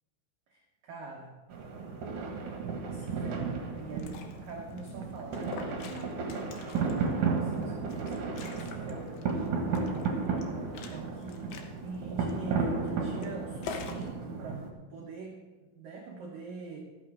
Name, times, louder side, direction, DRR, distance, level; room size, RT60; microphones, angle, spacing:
voice 1, 0.5-1.3 2.8-6.2 6.6-10.5 10.9-11.5 11.8-14.6 14.9-16.8, right 4 dB, 80° right, -1 dB, 1.9 m, -44 dB
sound 1, 1.5-14.7, right 4 dB, 60° right, 2.3 m, -33 dB
Liquid, 3.8-14.1, left 6 dB, 75° left, 2.3 m, -47 dB
14.0 x 13.5 x 3.6 m, 1.2 s
omnidirectional pair, 5.9 m